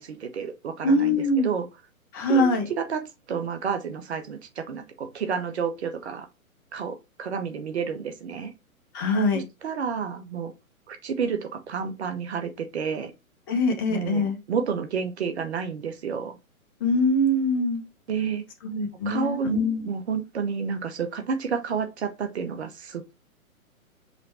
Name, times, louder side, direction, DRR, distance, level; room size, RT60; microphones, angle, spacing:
voice 1, 0.0-1.7 2.3-6.3 6.7-8.5 9.3-10.5 10.9-13.1 13.9-16.4 18.1-18.4 19.0-19.5 19.9-23.1, right 6 dB, 50° right, 0.9 m, -30 dB
voice 2, 0.8-1.5 2.1-2.7 8.9-9.4 13.5-14.4 16.8-17.8 18.6-19.9, left 1 dB, 15° left, 0.5 m, -23 dB
5.7 x 2.2 x 4.2 m
figure-of-eight pair, 125°, 43 cm